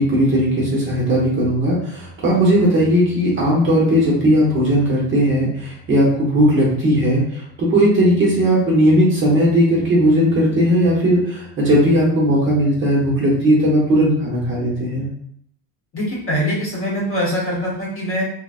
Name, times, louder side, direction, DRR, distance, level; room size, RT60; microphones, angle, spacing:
voice 1, 0.0-15.1, equal, 30° right, -5 dB, 0.7 m, -17 dB
voice 2, 15.9-18.2, equal, 30° left, -5 dB, 0.9 m, -23 dB
3.8 x 2.0 x 2.4 m, 0.66 s
cardioid pair, 165°, 43 cm